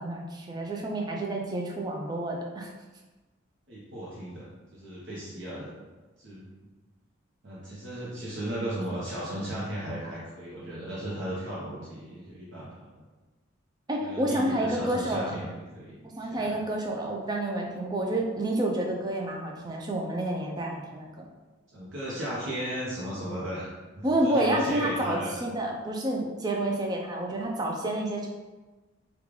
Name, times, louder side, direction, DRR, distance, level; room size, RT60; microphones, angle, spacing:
voice 1, 0.0-2.7 13.9-15.3 16.1-21.1 24.0-28.3, right 1 dB, 20° right, 0 dB, 0.4 m, -29 dB
voice 2, 3.7-5.7 6.2-6.4 7.4-13.0 14.0-16.5 21.7-23.7 23.9-25.3, right 1 dB, 60° right, -8 dB, 0.7 m, -36 dB
3.1 x 2.3 x 3.7 m, 1.2 s
head